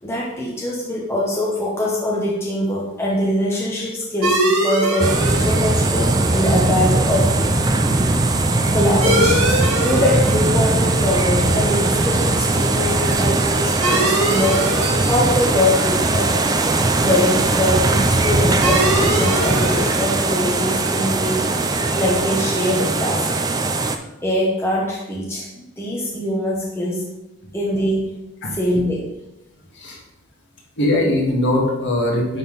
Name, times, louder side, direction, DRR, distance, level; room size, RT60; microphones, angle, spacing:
voice 1, 0.0-7.6 8.4-14.7 15.1-16.5 16.9-21.5 21.9-23.3 24.2-27.1 27.5-28.2 28.5-29.1, left 1 dB, 10° left, -4 dB, 0.9 m, -23 dB
sound 1, 4.2-23.4, right 1 dB, 70° right, 2.2 m, -27 dB
sound 2, 5.0-24.0, right 2 dB, 15° right, 0.4 m, -19 dB
Bell, 11.8-16.0, right 4 dB, 35° right, 1.4 m, -38 dB
voice 2, 30.8-32.4, left 1 dB, 55° left, -2 dB, 1.7 m, -20 dB
9.9 x 3.8 x 4.0 m, 0.97 s
head